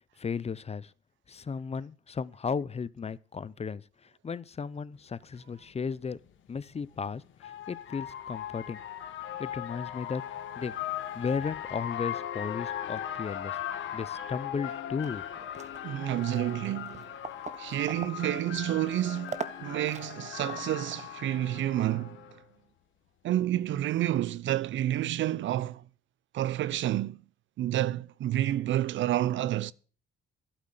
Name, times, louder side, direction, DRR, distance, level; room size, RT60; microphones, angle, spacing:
voice 1, 0.2-0.9 1.3-6.2 6.5-8.8 9.4-10.2 10.6-10.7 11.1-13.6 13.9-15.2, left 5 dB, 30° left, 0.7 m, -35 dB
sound 1, 5.2-5.3 6.7-22.3, left 10 dB, 75° left, 1.7 m, -38 dB
sound 2, 15.0-21.2, right 5 dB, 35° right, 1.2 m, -44 dB
voice 2, 15.8-17.0 17.6-22.2 23.2-25.8 26.3-27.2 27.6-29.7, right 13 dB, 70° right, 0.6 m, -29 dB
11.5 x 9.1 x 6.6 m
cardioid pair, 90°, 20 cm